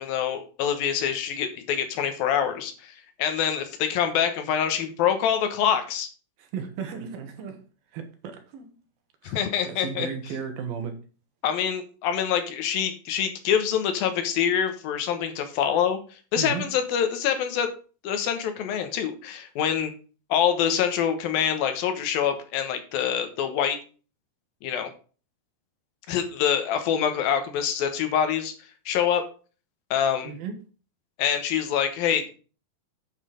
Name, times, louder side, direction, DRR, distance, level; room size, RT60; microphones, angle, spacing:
voice 1, 0.0-6.1 9.2-10.1 11.4-16.0 16.3-17.7 18.0-19.9 20.3-23.8 24.6-24.9 26.1-28.5 28.9-29.2 29.9-30.3 31.2-32.3, left 8 dB, 80° left, 7 dB, 3.0 m, -25 dB
voice 2, 6.4-7.6 7.9-8.8 9.2-9.4 9.7-10.9 16.4-16.6 30.2-30.5, right 6 dB, 85° right, 6 dB, 3.2 m, -35 dB
8.9 x 5.7 x 5.1 m, 0.37 s
omnidirectional pair, 4.1 m